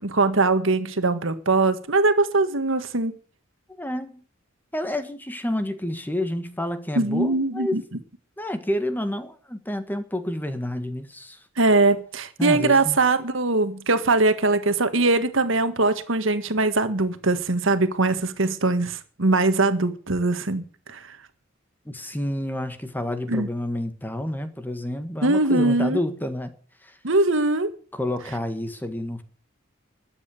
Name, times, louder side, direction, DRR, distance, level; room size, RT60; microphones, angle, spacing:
voice 1, 0.0-3.2 7.0-7.8 11.6-21.0 23.3-23.5 25.2-26.0 27.0-27.7, right 2 dB, 70° right, 1.7 m, -21 dB
voice 2, 3.8-4.2 4.7-7.8 8.4-11.4 12.4-13.0 21.9-26.5 26.8-27.0 27.9-29.2, left 1 dB, 10° left, 1.6 m, -29 dB
13.5 x 9.1 x 8.4 m
head